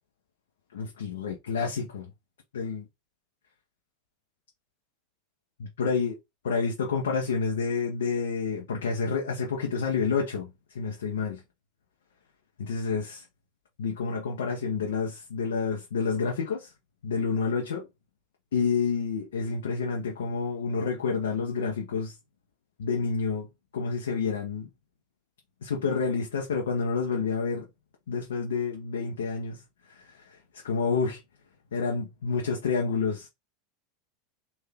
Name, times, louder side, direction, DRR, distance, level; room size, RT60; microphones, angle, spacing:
voice 1, 0.7-2.1 2.5-2.9 5.6-6.1 6.4-11.4 12.6-13.3 13.8-16.7 17.0-17.9 18.5-22.2 22.8-23.5 23.7-24.7 25.6-27.7 28.1-31.2 31.7-33.3, left 5 dB, 80° left, 0.9 m, -29 dB
3.5 x 2.7 x 3.5 m
hypercardioid pair, 90°, 0 cm